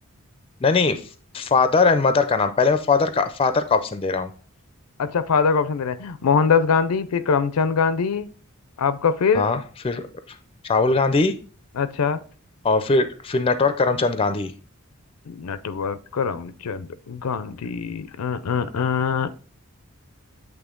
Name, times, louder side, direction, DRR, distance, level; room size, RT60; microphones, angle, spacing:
voice 1, 0.6-1.0 1.3-4.3 9.3-10.1 10.6-11.3 12.6-14.5, left 4 dB, 25° left, 0.4 m, -20 dB
voice 2, 5.0-8.3 8.8-9.5 11.7-12.2 15.3-19.4, left 6 dB, 85° left, 0.5 m, -23 dB
8.2 x 3.1 x 3.7 m
head